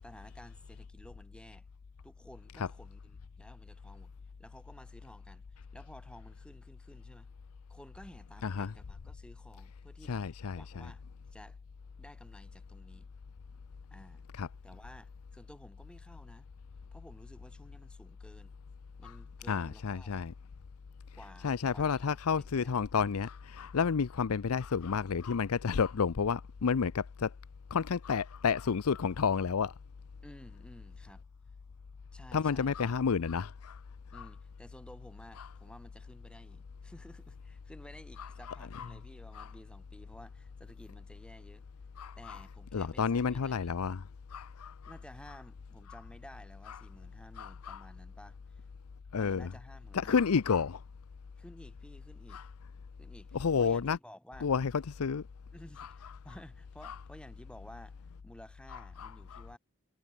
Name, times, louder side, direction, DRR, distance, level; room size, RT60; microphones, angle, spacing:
voice 1, 0.0-1.7 2.0-4.1 4.4-7.3 7.7-11.0 11.3-11.6 12.0-13.1 13.9-14.3 14.6-16.5 16.9-18.5 19.0-20.2 21.1-22.8 30.2-31.2 32.1-33.0 34.1-41.6 42.2-43.6 44.9-48.7 49.2-50.4 51.4-52.4 53.0-54.5 55.5-59.6, equal, 5° left, 7.6 m, -54 dB
voice 2, 8.4-8.7 10.1-10.9 14.4-14.5 19.0-19.2 19.5-20.3 21.4-27.3 27.7-29.7 32.3-33.8 34.1-34.3 35.4-35.5 38.2-38.3 38.7-38.9 39.3-39.5 42.0-42.4 42.7-44.9 46.7-46.8 47.4-47.8 49.1-49.5 49.9-50.8 52.3-52.5 53.3-54.0 54.4-55.3 55.8-55.9 56.8-57.0 58.7-59.4, left 6 dB, 85° left, 0.5 m, -31 dB
head